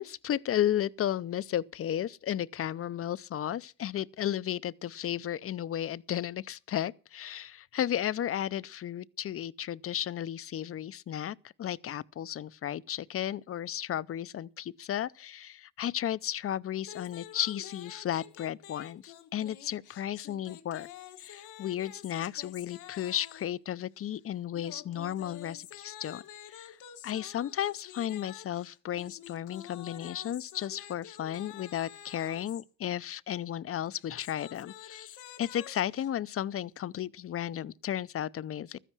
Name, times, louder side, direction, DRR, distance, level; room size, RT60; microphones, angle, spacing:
voice 1, 0.0-20.9 21.2-26.2 26.5-26.8 27.0-38.8, left 11 dB, 50° left, 0.6 m, -34 dB
sound 1, 16.8-23.6 24.5-32.6 33.9-36.1, left 10 dB, 85° left, 1.5 m, -49 dB
13.5 x 10.0 x 6.1 m
cardioid pair, 90°, 30 cm